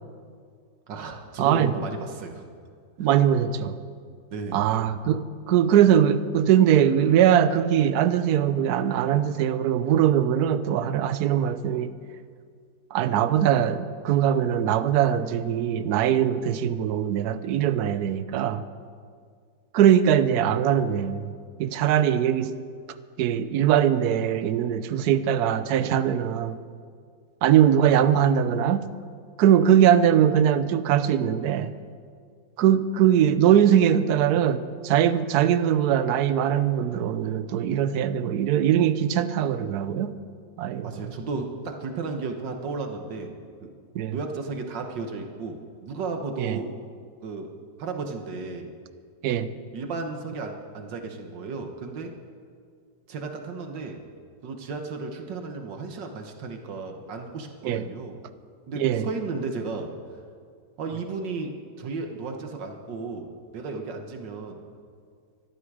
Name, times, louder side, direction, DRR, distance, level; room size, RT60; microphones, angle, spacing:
voice 1, 0.9-2.4 3.0-3.1 4.3-4.6 40.8-43.3 43.6-43.7 44.1-46.7 47.2-47.5 47.8-48.7 49.7-52.1 53.1-54.0 54.4-58.2 58.7-59.9 60.8-64.6, right 4 dB, 85° right, 4 dB, 1.9 m, -34 dB
voice 2, 1.4-1.7 3.0-3.8 4.5-11.9 12.9-18.6 19.7-21.3 21.6-22.5 23.2-26.6 27.4-28.9 29.4-31.7 32.6-40.2 40.6-41.1 43.9-44.2 46.4-46.6 49.2-49.5 57.6-57.8 58.8-59.1, right 9 dB, 70° right, 13 dB, 1.2 m, -21 dB
23.5 x 12.5 x 4.9 m, 2.1 s
omnidirectional pair, 1.9 m